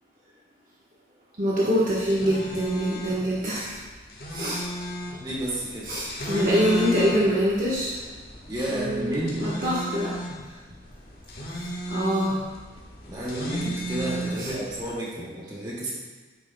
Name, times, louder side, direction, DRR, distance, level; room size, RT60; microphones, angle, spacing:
voice 1, 1.4-3.8 4.3-4.7 5.8-8.0 8.7-10.1 11.5-12.4 14.4-14.5, equal, 50° right, -7 dB, 1.2 m, -25 dB
sound 1, 1.9-14.9, equal, 55° left, 1.5 m, -35 dB
voice 2, 5.2-5.9 8.5-9.5 13.1-15.9, right 1 dB, 25° right, -6 dB, 2.0 m, -31 dB
9.8 x 8.6 x 2.2 m, 1.3 s
head